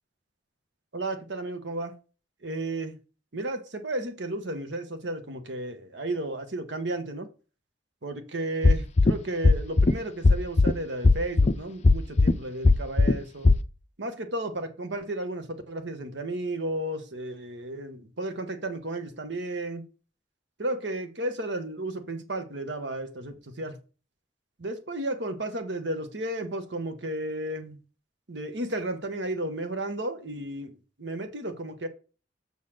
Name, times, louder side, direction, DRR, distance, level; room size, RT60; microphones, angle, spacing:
voice 1, 0.9-1.9 2.4-3.0 3.3-7.3 8.0-13.5 14.0-19.8 20.6-23.8 24.6-27.8 28.3-31.9, right 1 dB, 75° right, 1.3 m, -33 dB
sound 1, 8.6-9.1 9.4-9.9 10.2-10.7 11.0-11.5 11.8-12.3 12.6-13.1 13.4-13.6, left 3 dB, 35° left, 0.4 m, -17 dB
7.3 x 4.1 x 6.4 m
head